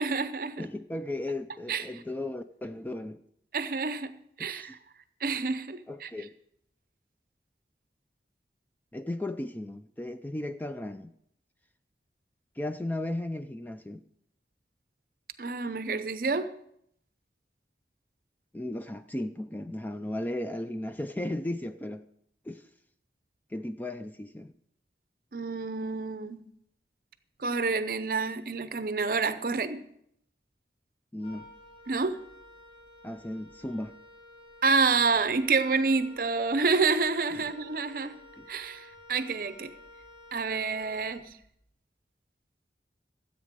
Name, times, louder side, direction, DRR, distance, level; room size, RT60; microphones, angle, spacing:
voice 1, 0.0-0.7 1.7-1.8 3.5-4.1 4.4-4.8 5.2-6.1 15.4-16.5 25.3-26.4 27.4-29.8 31.9-32.2 34.6-38.2 38.5-39.7 40.3-41.3, right 4 dB, 50° right, 0.7 m, -28 dB
voice 2, 0.6-3.2 4.4-4.8 5.9-6.3 8.9-11.1 12.6-14.0 18.5-22.1 22.4-22.7 23.5-24.5 31.1-31.5 33.0-34.0 37.3-37.4 38.4-38.5, left 1 dB, 10° left, 0.3 m, -35 dB
Wind instrument woodwind instrument, 31.2-41.6, left 1 dB, 30° left, 2.9 m, -52 dB
13.5 x 8.1 x 5.2 m
head